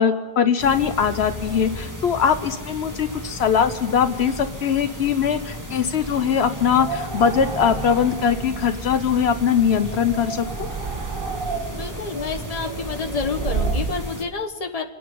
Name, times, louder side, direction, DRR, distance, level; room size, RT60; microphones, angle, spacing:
voice 1, 0.0-10.7, left 7 dB, 80° left, 9 dB, 1.1 m, -21 dB
sound 1, 0.6-14.2, equal, 15° right, 1.9 m, -35 dB
sound 2, 6.7-14.1, right 4 dB, 60° right, 1.4 m, -31 dB
voice 2, 11.7-14.8, left 4 dB, 35° left, 3 dB, 1.3 m, -29 dB
27.5 x 9.5 x 5.4 m, 1.3 s
omnidirectional pair, 1.1 m